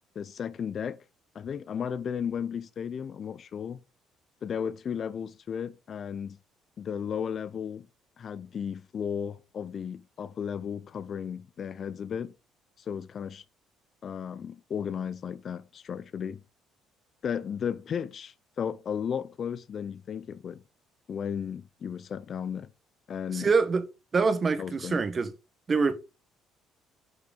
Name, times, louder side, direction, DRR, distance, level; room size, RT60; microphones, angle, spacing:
voice 1, 0.1-1.0 1.3-3.8 4.4-6.4 6.8-7.9 8.2-12.3 12.9-13.4 14.0-16.4 17.2-20.6 21.1-22.7 23.1-23.5 24.6-25.0, left 7 dB, 45° left, 0.6 m, -34 dB
voice 2, 23.3-23.8 24.1-25.3 25.7-25.9, right 4 dB, 35° right, 1.5 m, -25 dB
9.7 x 4.8 x 5.2 m
cardioid pair, 90°, 0 cm